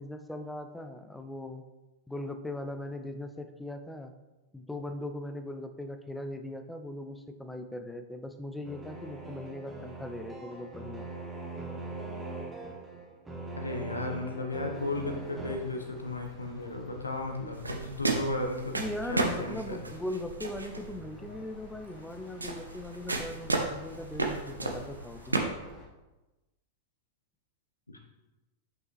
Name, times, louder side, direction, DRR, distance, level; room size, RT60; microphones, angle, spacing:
voice 1, 0.0-1.6 2.1-4.1 4.5-11.1 18.7-25.4, left 1 dB, 5° left, 6 dB, 0.4 m, -39 dB
sound 1, 8.7-15.6, right 2 dB, 15° right, 1.0 m, -41 dB
voice 2, 13.6-18.8 19.1-19.8 27.9-28.0, left 2 dB, 90° left, 3 dB, 0.9 m, -34 dB
sound 2, 14.7-25.9, left 3 dB, 30° left, 1.4 m, -52 dB
sound 3, 17.5-25.4, right 3 dB, 85° right, 0.6 m, -34 dB
5.8 x 5.4 x 3.1 m, 1.1 s
figure-of-eight pair, 95°, 0 cm